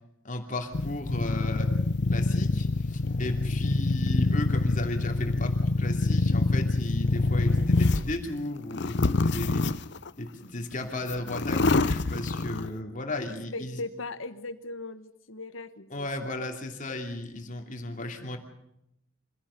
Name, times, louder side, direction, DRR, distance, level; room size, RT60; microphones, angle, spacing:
voice 1, 0.2-1.7 2.1-9.6 10.2-13.8 15.9-18.4, left 1 dB, 40° left, 4 dB, 2.8 m, -34 dB
sound 1, 0.7-8.1 8.7-10.1 10.7-10.8 11.1-12.7, left 3 dB, 60° left, 0.7 m, -26 dB
voice 2, 13.5-16.3 16.9-17.0, left 2 dB, 80° left, 11 dB, 1.4 m, -39 dB
25.5 x 16.5 x 6.9 m, 0.80 s
head